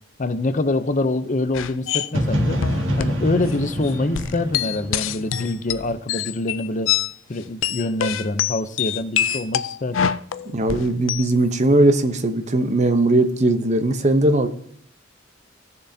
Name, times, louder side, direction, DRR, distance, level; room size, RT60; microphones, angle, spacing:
voice 1, 0.2-2.6 3.0-6.9 7.3-10.1, left 2 dB, 40° left, 11 dB, 0.6 m, -25 dB
sound 1, 1.5-2.1 2.6-3.2 3.5-3.6 3.8-7.1 7.4-11.3, left 9 dB, 85° left, 0.4 m, -25 dB
sound 2, 2.1-6.0, equal, 85° right, 1.7 m, -26 dB
voice 2, 10.5-14.5, right 2 dB, 35° right, 9 dB, 0.8 m, -19 dB
16.5 x 6.8 x 2.8 m, 0.66 s
head